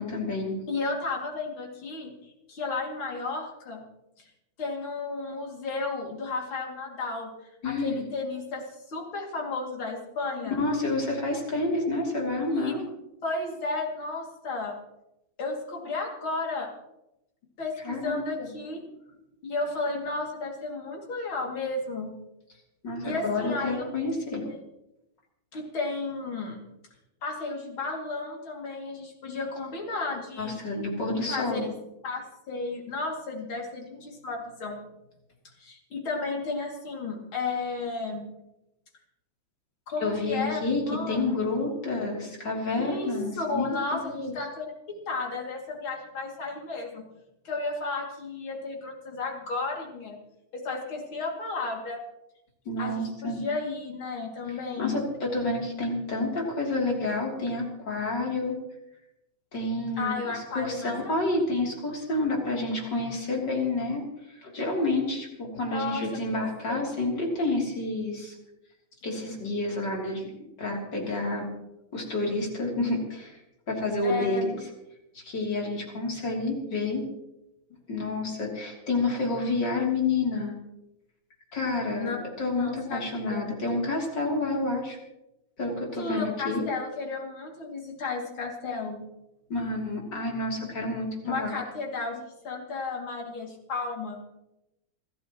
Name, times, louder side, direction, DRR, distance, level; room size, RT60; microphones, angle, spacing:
voice 1, 0.0-0.6 7.6-8.1 10.5-12.8 17.8-18.5 22.8-24.4 30.4-31.7 40.0-44.5 52.7-53.4 54.5-58.6 59.5-68.4 69.0-70.3 70.6-71.5 71.9-73.4 73.7-74.6 75.1-77.1 77.9-80.5 81.5-85.0 85.6-86.7 89.5-91.6, left 2 dB, 60° left, -2 dB, 3.9 m, -29 dB
voice 2, 0.7-2.1 2.5-3.8 4.6-7.3 7.6-10.6 12.5-12.7 13.2-14.8 15.4-16.7 17.6-18.8 19.4-22.1 23.0-23.8 24.4-24.5 25.5-26.6 27.2-30.6 31.1-31.7 32.0-34.8 35.6-38.3 39.9-40.6 40.9-41.7 42.7-47.0 47.5-50.2 50.5-52.0 52.8-55.0 60.0-61.1 65.7-66.4 66.7-66.9 74.0-74.4 82.0-82.2 82.6-83.0 83.3-83.6 86.0-89.1 91.2-94.2, left 3 dB, 90° left, -1 dB, 3.5 m, -33 dB
29.0 x 13.5 x 3.1 m, 0.90 s
omnidirectional pair, 2.2 m